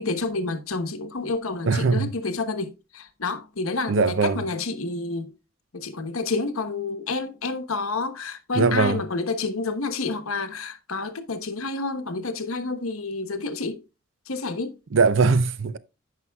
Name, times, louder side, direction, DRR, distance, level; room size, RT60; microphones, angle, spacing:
voice 1, 0.0-5.3 5.7-13.8 14.3-14.8, left 3 dB, 85° left, 1.2 m, -29 dB
voice 2, 1.7-2.1 3.9-4.4 8.5-9.0 14.9-15.8, right 4 dB, 65° right, 0.6 m, -20 dB
15.0 x 5.6 x 2.3 m
head